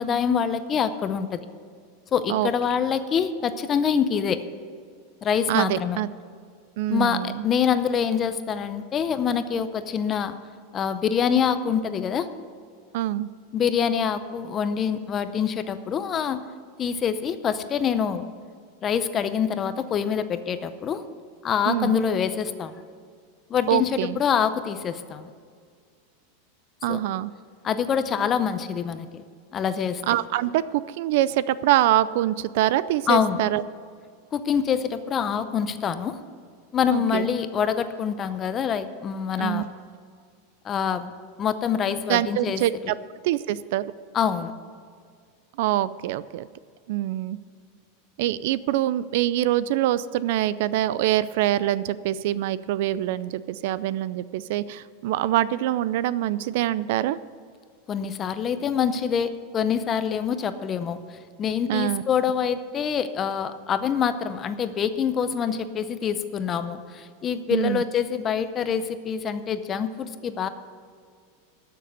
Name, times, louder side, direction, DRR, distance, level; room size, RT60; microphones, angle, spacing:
voice 1, 0.0-1.5 2.1-4.4 5.2-6.0 6.9-10.3 10.7-12.3 13.5-16.4 16.8-18.2 18.8-21.0 21.4-22.7 23.5-25.3 26.9-27.0 27.6-29.2 29.5-30.0 33.1-33.4 34.3-36.2 36.7-39.7 40.6-41.1 41.4-42.9 44.1-44.5 57.9-61.0 61.4-70.5, left 7 dB, 20° left, 11 dB, 0.6 m, -25 dB
voice 2, 5.5-6.1 6.8-7.4 12.9-13.3 21.7-22.0 23.7-24.2 26.8-27.3 30.1-33.6 36.9-37.3 39.4-39.6 42.1-42.9 43.2-43.9 45.6-46.5 46.9-47.4 48.2-57.2 61.7-62.0 67.5-67.8, right 13 dB, 55° right, 17 dB, 0.4 m, -24 dB
12.5 x 6.7 x 8.0 m, 2.1 s
supercardioid pair, 170°, 0 cm